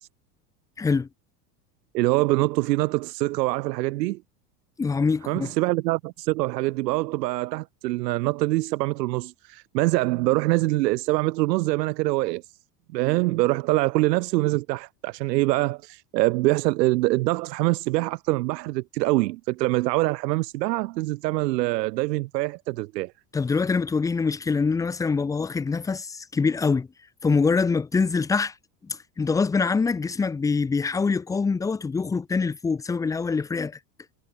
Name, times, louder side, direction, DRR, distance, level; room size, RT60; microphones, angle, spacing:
voice 1, 0.8-1.1 4.8-5.5 23.3-26.9 27.2-28.5 28.8-33.8, left 4 dB, 10° left, 0.4 m, -24 dB
voice 2, 1.9-4.2 5.3-12.6 12.9-23.1, right 20 dB, 75° right, 1.8 m, -24 dB
hypercardioid pair, 100°, 49 cm